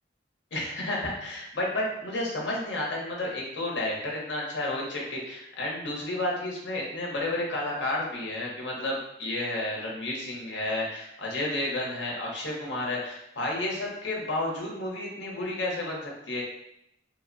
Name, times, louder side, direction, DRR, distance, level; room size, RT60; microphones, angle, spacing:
voice 1, 0.5-16.4, left 1 dB, 70° left, -2 dB, 0.7 m, -31 dB
2.8 x 2.0 x 2.4 m, 0.80 s
head